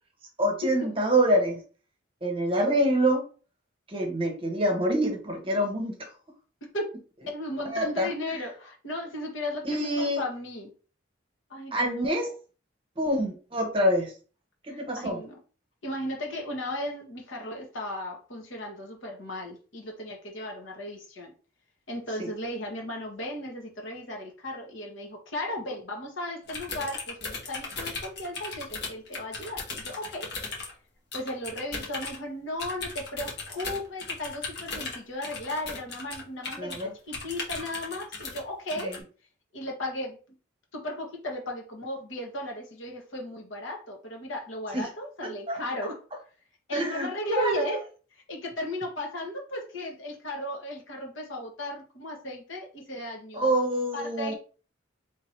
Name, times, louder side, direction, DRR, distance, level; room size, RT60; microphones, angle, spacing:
voice 1, 0.4-1.6 2.2-3.3 3.9-6.1 7.6-8.4 9.6-10.2 11.7-12.3 13.0-14.1 14.6-15.2 22.2-22.3 36.6-36.9 38.8-39.0 44.7-44.9 45.2-45.6 46.7-47.8 53.3-54.3, right 1 dB, 25° right, 2 dB, 0.9 m, -26 dB
voice 2, 7.3-10.7 11.5-11.9 14.7-15.3 15.8-21.3 21.9-30.3 31.1-39.0 39.5-40.2 40.7-46.0 46.7-47.8 48.3-53.5 53.9-54.3, left 1 dB, 75° left, 0 dB, 1.4 m, -35 dB
sound 1, 26.5-30.7 31.1-32.2 32.6-36.8 37.1-38.4 38.7-39.0, left 3 dB, 55° left, 1.2 m, -37 dB
3.3 x 2.8 x 4.5 m, 0.37 s
head